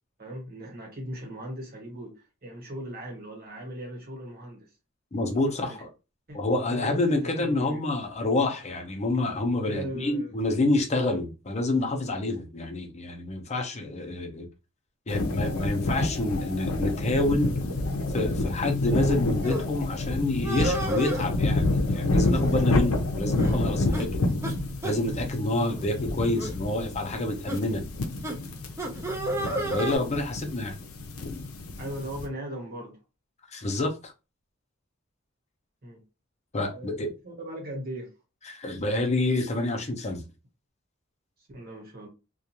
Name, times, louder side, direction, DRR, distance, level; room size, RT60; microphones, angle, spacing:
voice 1, 0.2-4.7 5.6-5.8 6.3-6.4 6.7-7.9 9.6-10.3 31.8-33.0 35.8-36.0 36.7-38.1 41.5-42.1, equal, 45° right, 1.2 m, -38 dB
voice 2, 5.1-5.9 6.3-14.5 15.1-17.5 18.1-24.2 24.8-27.8 29.3-30.8 33.5-34.1 36.5-37.1 38.5-40.2, left 2 dB, 35° left, 0.6 m, -28 dB
sound 1, 15.1-32.3, left 2 dB, 85° left, 0.5 m, -28 dB
sound 2, 19.4-19.6 20.4-21.3 22.2-22.6 22.9-23.0 23.4-23.6 23.9-24.1 24.4-24.5 24.8-25.0 25.7-25.8 26.4-26.6 27.5-27.6 28.2-28.3 28.8-30.0, right 1 dB, 15° right, 0.4 m, -31 dB
2.4 x 2.2 x 2.8 m
head